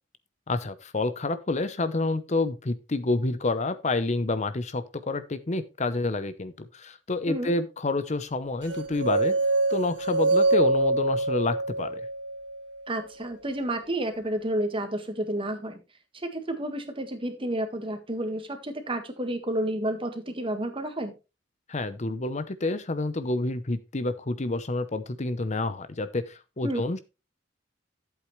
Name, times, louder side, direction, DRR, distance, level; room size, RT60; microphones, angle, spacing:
voice 1, 0.5-9.4 9.7-12.1 21.7-27.0, left 2 dB, 40° left, 13 dB, 0.8 m, -28 dB
sound 1, 8.7-12.8, right 2 dB, 70° right, 1.7 m, -25 dB
voice 2, 12.9-15.8 16.2-21.1 26.6-26.8, right 1 dB, 30° right, 7 dB, 1.8 m, -30 dB
12.0 x 8.2 x 3.2 m, 0.28 s
head